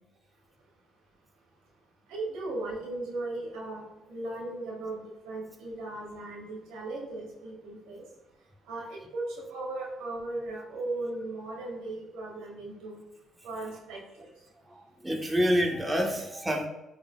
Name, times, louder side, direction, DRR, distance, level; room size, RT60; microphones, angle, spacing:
voice 1, 1.3-13.0 13.4-14.5, right 2 dB, 80° right, -1 dB, 2.0 m, -38 dB
voice 2, 14.7-16.7, equal, 15° right, 0 dB, 1.4 m, -27 dB
12.0 x 4.2 x 2.4 m, 0.95 s
supercardioid pair, 60°, 0 cm